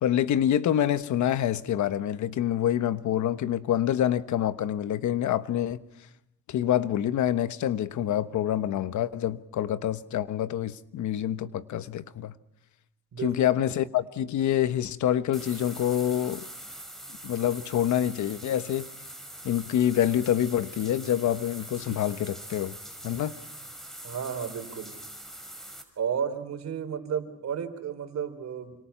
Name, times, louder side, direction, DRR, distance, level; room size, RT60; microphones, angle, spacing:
voice 1, 0.0-5.8 6.5-12.3 13.2-16.4 17.2-18.9 19.4-22.8 23.0-23.3, left 11 dB, 75° left, 1.2 m, -26 dB
sound 1, 15.3-25.8, right 1 dB, ahead, 5.5 m, -43 dB
voice 2, 24.0-24.9 26.0-28.7, right 7 dB, 60° right, 3.9 m, -32 dB
28.0 x 26.0 x 5.8 m
cardioid pair, 90°, 30 cm